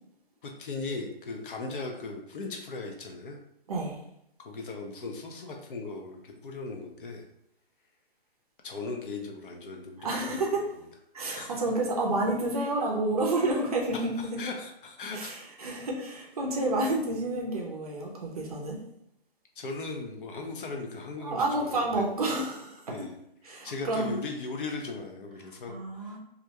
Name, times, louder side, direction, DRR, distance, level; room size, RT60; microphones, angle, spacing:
voice 1, 0.4-3.4 4.4-7.2 8.6-10.7 11.4-11.5 13.9-15.3 19.6-22.0 22.9-23.2 23.5-26.2, left 3 dB, 55° left, 2 dB, 0.6 m, -38 dB
voice 2, 3.7-4.0 10.0-10.6 11.1-14.1 15.1-18.8 21.2-23.0 23.4-24.2 25.7-26.2, right 2 dB, 40° right, -1 dB, 0.5 m, -29 dB
2.4 x 2.1 x 2.8 m, 0.78 s
hypercardioid pair, 160°, 31 cm